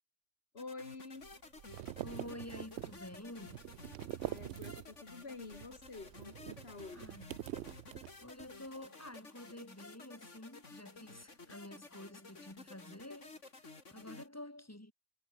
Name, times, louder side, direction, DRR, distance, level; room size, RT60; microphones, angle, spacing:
voice 1, 0.5-1.3 4.2-7.1, left 3 dB, 55° left, 2.5 m, -48 dB
sound 1, 0.6-14.3, left 3 dB, 90° left, 3.5 m, -54 dB
sound 2, 1.2-5.1 5.4-8.5, right 12 dB, 70° right, 0.9 m, -45 dB
voice 2, 2.0-3.7 6.9-7.3 8.2-14.9, left 1 dB, 10° left, 3.5 m, -49 dB
omnidirectional pair, 1.2 m